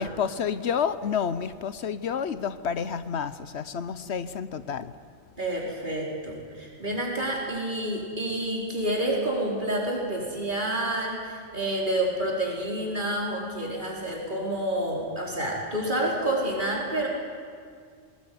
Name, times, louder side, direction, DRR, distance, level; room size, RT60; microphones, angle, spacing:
voice 1, 0.0-4.9, left 7 dB, 70° left, 13 dB, 1.1 m, -29 dB
voice 2, 5.4-17.1, right 1 dB, 45° right, -2 dB, 4.9 m, -29 dB
20.0 x 19.5 x 9.6 m, 2.1 s
omnidirectional pair, 1.2 m